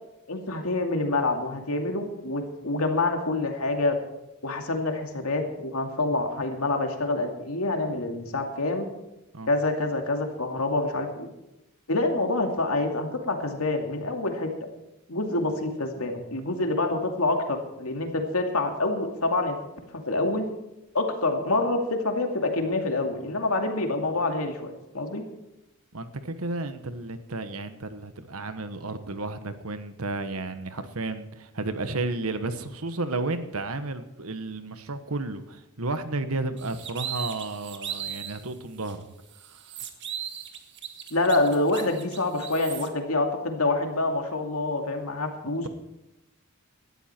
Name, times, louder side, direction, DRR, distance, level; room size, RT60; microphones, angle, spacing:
voice 1, 0.3-4.0 4.4-8.9 9.5-11.3 11.9-14.7 15.1-19.6 20.1-20.5 20.9-25.2 41.1-45.7, left 2 dB, 70° left, 4 dB, 2.5 m, -27 dB
voice 2, 25.9-39.1 39.5-39.6, right 2 dB, 70° right, 10 dB, 1.4 m, -32 dB
sound 1, 36.6-38.4 38.8-38.9 39.3-42.9, right 9 dB, 55° right, 1.6 m, -37 dB
18.0 x 12.5 x 4.5 m, 0.94 s
head